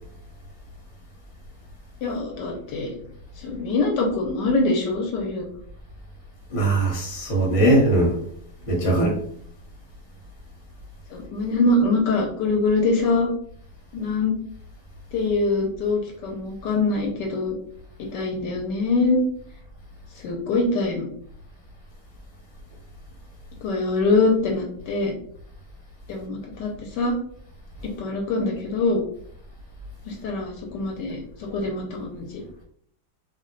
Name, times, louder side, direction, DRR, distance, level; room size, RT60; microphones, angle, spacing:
voice 1, 2.0-3.0 3.4-5.5 11.1-13.3 13.9-14.3 15.1-17.6 18.1-19.2 20.1-21.1 23.6-25.1 26.1-27.1 28.0-29.0 30.0-32.4, left 3 dB, 75° left, 0 dB, 1.2 m, -24 dB
voice 2, 6.5-8.2 8.7-9.2, right 1 dB, 45° left, -1 dB, 1.1 m, -20 dB
2.9 x 2.1 x 3.7 m, 0.65 s
omnidirectional pair, 1.9 m